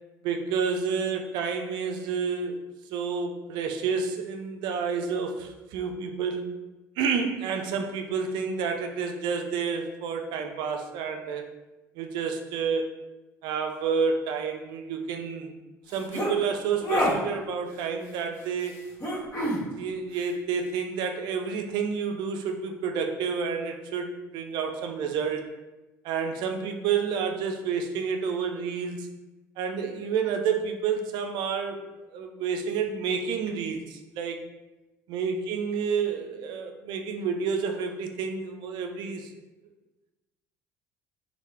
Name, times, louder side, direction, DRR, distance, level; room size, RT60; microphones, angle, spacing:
voice 1, 0.2-2.6 2.9-6.5 7.0-11.4 12.0-12.9 13.4-15.5 15.9-18.8 19.8-25.4 26.0-29.1 29.6-31.8 32.1-34.4 35.1-39.3, right 6 dB, 60° right, 5 dB, 0.4 m, -29 dB
sound 1, 15.9-16.3 16.8-17.1 19.0-19.6, equal, 40° left, 1.2 m, -26 dB
3.0 x 2.1 x 3.1 m, 1.1 s
hypercardioid pair, 55°, 9 cm